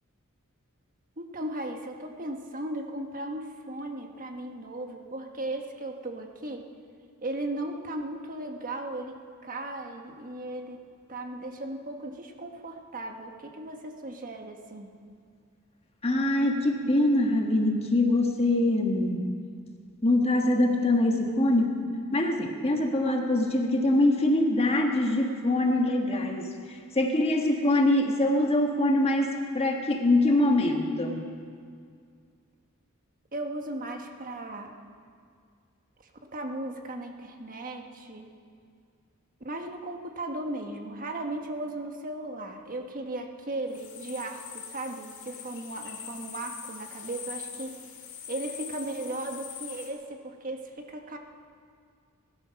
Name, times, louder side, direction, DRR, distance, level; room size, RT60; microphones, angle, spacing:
voice 1, 1.2-6.6 7.2-9.1 9.4-10.8 11.1-14.9 33.3-34.7 36.3-38.3 39.4-47.7 48.3-51.2, right 1 dB, 40° right, 4 dB, 1.4 m, -36 dB
voice 2, 16.0-19.3 20.0-31.3, left 1 dB, 30° left, 3 dB, 1.5 m, -24 dB
sound 1, 43.7-49.9, left 7 dB, 55° left, 2.7 m, -42 dB
20.0 x 12.5 x 5.8 m, 2.1 s
head